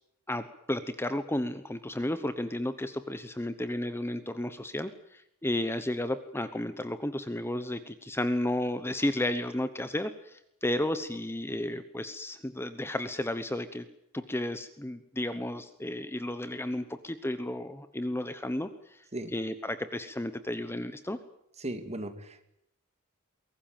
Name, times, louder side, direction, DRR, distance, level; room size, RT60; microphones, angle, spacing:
voice 1, 0.3-13.9 14.1-19.0 19.3-21.2, left 1 dB, 10° left, 11 dB, 0.9 m, -33 dB
voice 2, 21.6-22.5, right 1 dB, 30° right, 8 dB, 2.4 m, -37 dB
22.5 x 18.5 x 9.1 m, 0.78 s
head